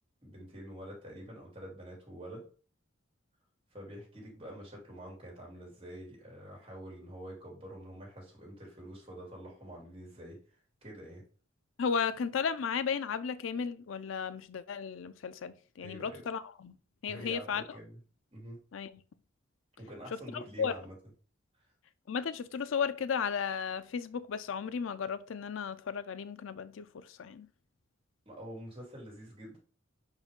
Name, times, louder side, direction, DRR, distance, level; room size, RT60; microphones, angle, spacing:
voice 1, 0.2-2.4 3.7-10.4 10.8-11.2 15.8-16.2 17.1-18.0 18.3-18.6 19.8-20.9 28.2-29.6, right 1 dB, 30° right, 2.9 m, -47 dB
voice 2, 11.8-16.8 17.0-17.8 18.7-19.0 20.1-20.7 22.1-27.5, left 6 dB, 85° left, 0.5 m, -35 dB
5.5 x 4.8 x 3.6 m
head